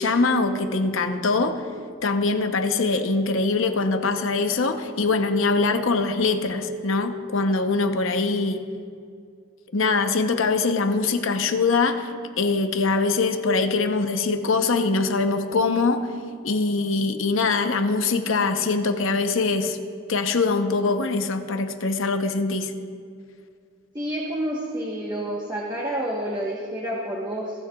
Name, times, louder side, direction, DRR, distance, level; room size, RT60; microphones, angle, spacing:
voice 1, 0.0-1.6 2.0-8.6 9.7-12.1 12.4-16.1 16.4-19.8 20.1-22.7, left 3 dB, 70° left, 7 dB, 0.8 m, -23 dB
voice 2, 23.9-27.6, right 1 dB, 20° right, -5 dB, 1.1 m, -29 dB
27.0 x 9.6 x 2.3 m, 2.3 s
head